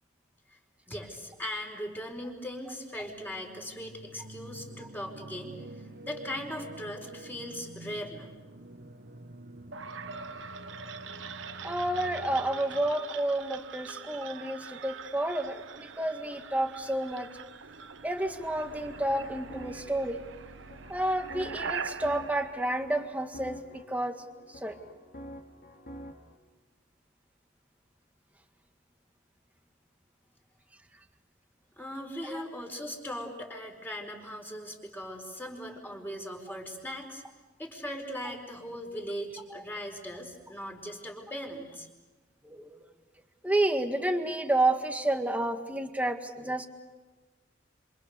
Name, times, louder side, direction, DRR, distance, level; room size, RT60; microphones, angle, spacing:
voice 1, 0.9-5.6 6.0-8.3 31.8-37.2 37.6-41.9, equal, 10° left, 1 dB, 4.9 m, -39 dB
sound 1, 3.0-12.9, right 1 dB, 60° right, 1.6 m, -48 dB
sound 2, 9.7-23.6, right 5 dB, 90° right, 1.1 m, -43 dB
voice 2, 11.6-17.3 18.0-20.2 20.9-24.2 24.5-24.8 32.2-32.4 39.5-39.6 42.4-42.9 43.4-46.7, right 1 dB, 10° right, 5 dB, 1.8 m, -30 dB
sound 3, 18.7-26.4, equal, 55° left, 3.0 m, -48 dB
27.5 x 27.5 x 6.7 m, 1.2 s
head